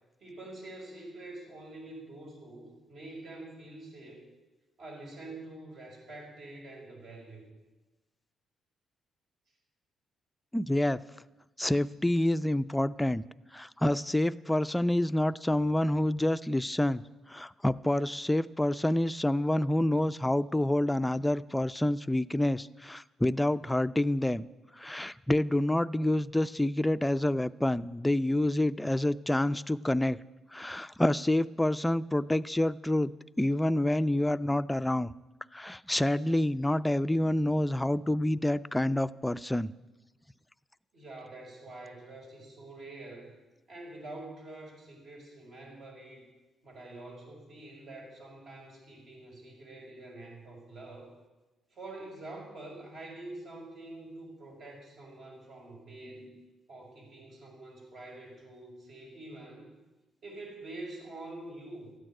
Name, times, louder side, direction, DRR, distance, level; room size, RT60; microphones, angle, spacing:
voice 1, 0.2-4.3 4.8-7.5 40.9-43.3 43.7-46.3 46.6-51.1 51.7-56.3 56.7-59.7 60.2-61.9, right 2 dB, 60° right, -1 dB, 5.8 m, -46 dB
voice 2, 10.5-11.0 11.6-13.2 13.5-17.0 17.3-24.5 24.8-30.2 30.5-33.1 33.4-35.1 35.5-39.7, left 1 dB, 10° left, 14 dB, 0.5 m, -28 dB
14.0 x 9.4 x 9.0 m, 1.1 s
cardioid pair, 90°, 0 cm